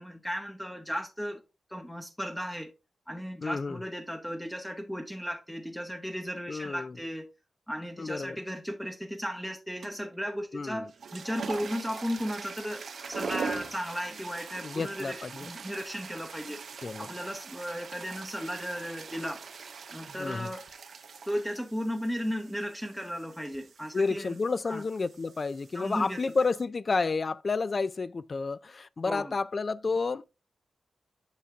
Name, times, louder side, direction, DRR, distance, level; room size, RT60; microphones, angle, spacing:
voice 1, 0.0-1.4 1.7-2.7 3.1-7.3 7.7-16.6 17.0-19.4 19.9-20.6 21.2-24.4 24.7-24.8 25.7-26.2 29.0-29.3, equal, ahead, 0.8 m, -35 dB
voice 2, 3.4-3.8 6.5-7.0 8.0-8.4 10.5-10.9 14.6-15.5 16.8-17.1 20.2-20.5 23.9-30.3, left 4 dB, 45° left, 0.3 m, -30 dB
sound 1, 9.8-10.2 10.8-26.6, right 5 dB, 70° right, 0.7 m, -42 dB
8.4 x 5.8 x 2.4 m
cardioid pair, 85°, 0 cm